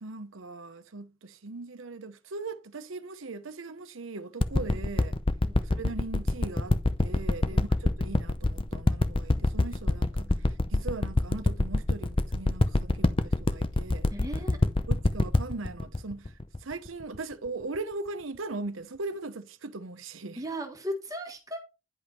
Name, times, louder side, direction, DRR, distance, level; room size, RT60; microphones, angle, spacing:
voice 1, 0.0-5.2 5.7-7.7 8.0-14.1 14.9-16.3 16.6-20.4, right 3 dB, 85° right, 0.9 m, -39 dB
sound 1, 4.4-17.2 17.7-17.8, left 2 dB, 25° left, 0.6 m, -25 dB
voice 2, 10.2-10.5 14.1-14.6 20.4-21.6, equal, 20° right, 1.6 m, -37 dB
10.5 x 5.3 x 4.3 m
head